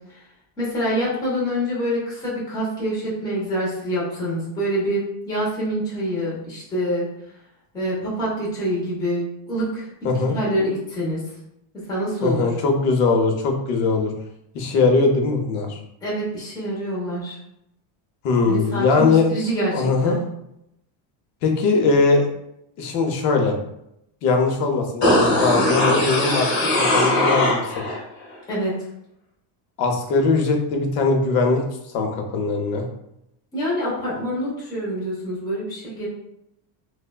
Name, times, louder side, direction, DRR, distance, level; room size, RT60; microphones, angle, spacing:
voice 1, 0.6-7.1 7.7-9.9 10.3-11.2 11.9-12.5 16.0-17.4 18.5-20.2 28.5-28.7 33.5-36.1, equal, 10° left, -7 dB, 0.5 m, -26 dB
voice 2, 10.0-10.4 12.2-14.1 14.5-15.8 18.2-19.3 19.7-20.2 21.4-22.3 22.8-23.5 24.2-26.5 26.8-27.6 29.8-31.6 31.9-32.9, left 4 dB, 90° left, 3 dB, 0.7 m, -20 dB
sound 1, 25.0-28.0 28.3-28.4, left 1 dB, 35° left, 0.8 m, -20 dB
3.2 x 2.1 x 2.2 m, 0.81 s
cardioid pair, 170°, 49 cm